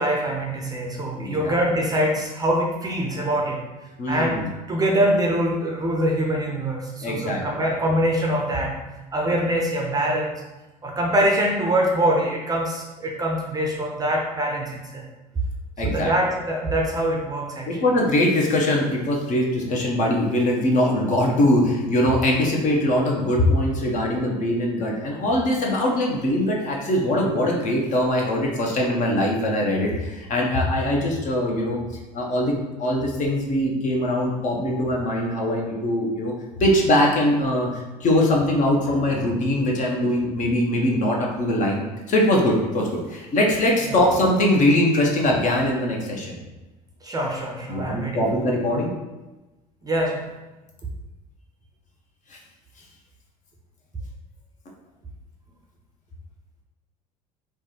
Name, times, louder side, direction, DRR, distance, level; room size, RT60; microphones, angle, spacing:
voice 1, 0.0-3.6 4.1-8.8 9.1-10.4 10.8-15.0 15.8-17.7 43.9-44.0 47.0-48.3 49.8-50.3, right 1 dB, 20° right, 0 dB, 0.6 m, -24 dB
voice 2, 1.2-1.6 4.0-4.5 7.0-7.4 15.8-16.1 17.7-31.8 32.1-36.3 36.6-46.4 47.7-48.9 52.3-52.4, left 1 dB, 35° left, -1 dB, 0.8 m, -22 dB
4.6 x 2.2 x 2.8 m, 1.1 s
figure-of-eight pair, 65°, 21 cm